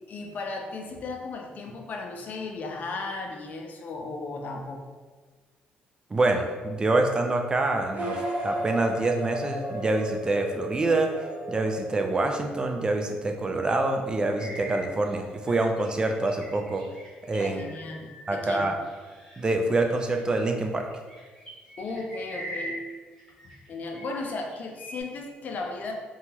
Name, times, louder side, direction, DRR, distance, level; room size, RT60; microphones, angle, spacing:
voice 1, 0.1-4.8 17.4-18.7 21.8-22.8 23.4-25.9, left 3 dB, 55° left, 3 dB, 0.4 m, -35 dB
voice 2, 6.1-11.1 11.5-16.8 17.2-17.6 18.3-18.8 19.4-20.9, right 2 dB, 25° right, 4 dB, 0.3 m, -26 dB
sound 1, 7.9-12.7, right 1 dB, 50° right, 0.6 m, -34 dB
sound 2, 14.3-19.5 19.9-23.7 23.9-25.0, right 1 dB, 10° left, 1.0 m, -43 dB
2.8 x 2.3 x 2.8 m, 1.4 s
cardioid pair, 95°, 3 cm